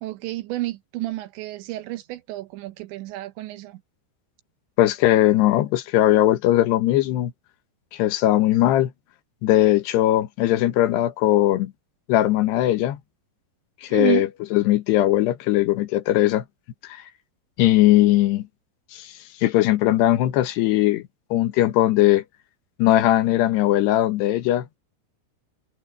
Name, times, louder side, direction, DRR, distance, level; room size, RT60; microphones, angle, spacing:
voice 1, 0.0-3.8 13.9-14.3, right 17 dB, 80° right, 3.2 m, -30 dB
voice 2, 4.8-7.3 7.9-8.9 9.4-11.7 12.1-13.0 13.8-16.4 16.8-17.0 17.6-18.5 18.9-19.1 19.4-21.0 21.3-22.2 22.8-24.7, left 14 dB, 75° left, 3.2 m, -19 dB
omnidirectional pair, 5.2 m